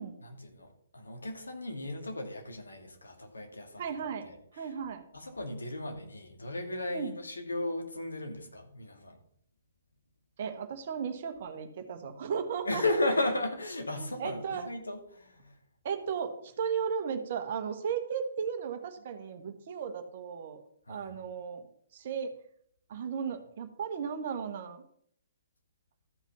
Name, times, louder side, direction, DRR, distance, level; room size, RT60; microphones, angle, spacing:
voice 1, 0.2-4.7 5.1-9.2 12.6-15.6 20.9-21.1, left 2 dB, 75° left, 3 dB, 2.3 m, -35 dB
voice 2, 3.8-4.3 4.5-5.0 6.9-7.1 10.4-12.8 13.9-14.7 15.8-20.6 20.9-22.3 22.9-24.8, right 7 dB, 45° right, 8 dB, 1.4 m, -35 dB
13.5 x 5.7 x 6.0 m, 0.68 s
figure-of-eight pair, 125°, 0 cm